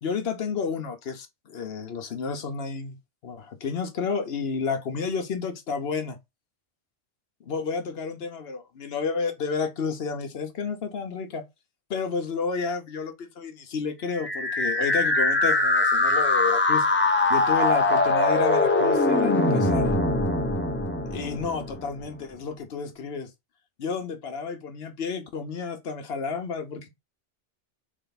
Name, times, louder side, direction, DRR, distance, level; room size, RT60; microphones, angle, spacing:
voice 1, 0.0-3.0 3.2-6.2 7.4-11.4 11.9-16.9 17.3-20.0 21.1-23.3 23.8-26.9, left 5 dB, 60° left, 1.1 m, -31 dB
sound 1, 14.1-22.0, left 2 dB, 15° left, 0.6 m, -22 dB
3.5 x 3.4 x 3.9 m
omnidirectional pair, 1.2 m